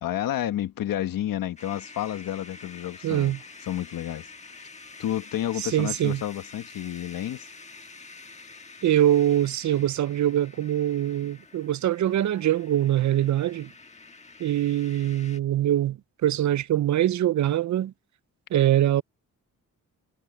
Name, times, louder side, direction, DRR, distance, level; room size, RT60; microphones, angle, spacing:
voice 1, 0.0-3.3 3.6-4.3 5.0-7.5, left 12 dB, 85° left, 1.6 m, -30 dB
sound 1, 1.6-15.4, left 3 dB, 20° left, 1.5 m, -47 dB
voice 2, 3.0-3.4 5.6-6.2 8.8-13.7 14.4-17.9 18.5-19.0, right 12 dB, 60° right, 0.6 m, -23 dB
cardioid pair, 105°, 33 cm